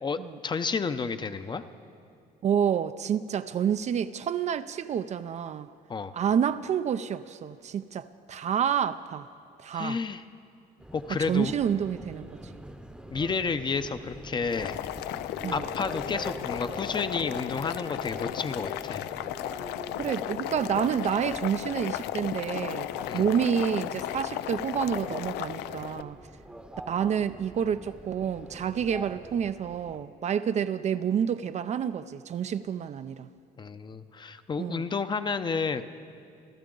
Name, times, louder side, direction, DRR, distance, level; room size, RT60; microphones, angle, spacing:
voice 1, 0.0-1.6 5.9-6.1 9.7-10.2 10.9-11.5 13.1-14.8 15.5-19.1 23.1-23.2 33.6-35.9, left 5 dB, 25° left, 0.7 m, -31 dB
voice 2, 2.4-5.7 6.1-9.3 9.6-10.0 11.2-12.6 15.4-15.6 20.0-26.2 26.9-33.3 34.6-34.9, right 8 dB, 45° right, 0.4 m, -29 dB
Subway metro underground, 10.8-30.0, right 1 dB, 5° right, 0.8 m, -44 dB
Boiling, 14.4-26.0, left 13 dB, 85° left, 0.4 m, -35 dB
27.0 x 13.5 x 3.9 m
cardioid pair, 110°, 17 cm